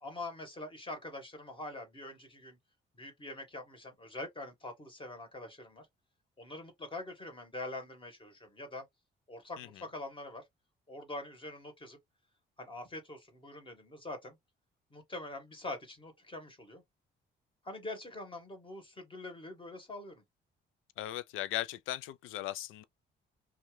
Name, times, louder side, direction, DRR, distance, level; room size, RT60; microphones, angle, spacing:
voice 1, 0.0-2.6 2.9-5.9 6.4-8.9 9.3-10.5 10.9-12.0 12.6-14.4 14.9-16.8 17.6-20.2, left 2 dB, 25° left, 1.4 m, -44 dB
voice 2, 21.0-22.8, left 14 dB, 90° left, 0.4 m, -37 dB
2.7 x 2.4 x 3.1 m
cardioid pair, 90°, 20 cm